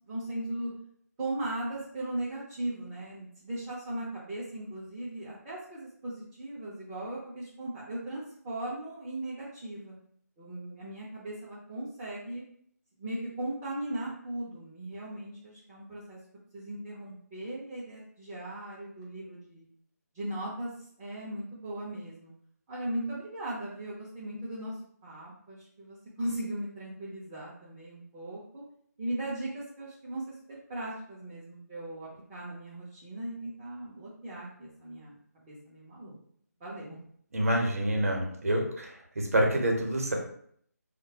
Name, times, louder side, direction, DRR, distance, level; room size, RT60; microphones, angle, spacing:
voice 1, 0.1-0.7 1.2-10.0 10.4-12.4 13.0-16.2 16.5-19.7 20.1-20.7 21.0-22.3 22.7-24.7 25.0-28.6 29.0-36.1 36.6-37.0, right 1 dB, 15° right, -8 dB, 0.4 m, -38 dB
voice 2, 37.3-40.1, right 1 dB, 55° right, 1 dB, 0.7 m, -27 dB
3.1 x 2.1 x 2.7 m, 0.65 s
figure-of-eight pair, 150°, 9 cm